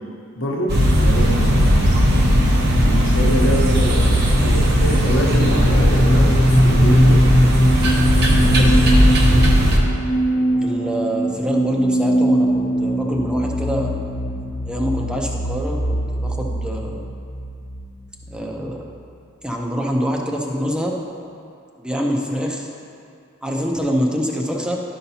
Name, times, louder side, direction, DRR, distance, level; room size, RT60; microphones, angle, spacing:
voice 1, 0.4-1.7 2.8-4.1 4.4-7.3 8.1-8.8, equal, 65° left, -1 dB, 1.0 m, -25 dB
sound 1, 0.7-9.8, equal, 50° right, 0.9 m, -16 dB
sound 2, 3.5-19.0, equal, 40° left, 1.1 m, -21 dB
voice 2, 10.6-13.9 14.7-17.0 18.3-18.9 19.4-20.9 21.8-22.7 23.4-24.8, equal, 5° right, -1 dB, 0.6 m, -25 dB
11.5 x 5.5 x 2.8 m, 2.4 s
head